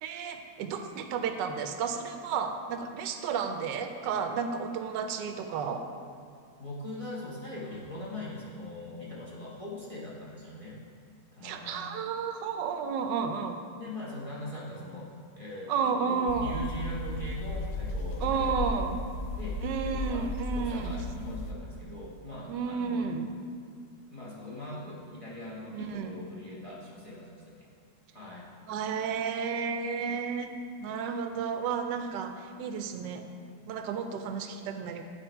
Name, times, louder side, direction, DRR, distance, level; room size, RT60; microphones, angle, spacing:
voice 1, 0.0-5.9 11.4-13.6 15.7-16.6 18.2-19.0 19.6-21.0 22.5-23.3 25.7-26.1 28.7-33.2 33.7-35.0, right 6 dB, 85° right, 6 dB, 1.2 m, -32 dB
voice 2, 6.6-10.8 11.3-11.8 13.8-15.1 15.3-18.6 19.3-23.1 24.1-27.7 28.1-28.5, left 1 dB, 25° left, -6 dB, 1.0 m, -41 dB
sound 1, 16.3-21.5, left 1 dB, 70° left, 1.1 m, -35 dB
9.2 x 4.6 x 4.4 m, 2.2 s
omnidirectional pair, 1.9 m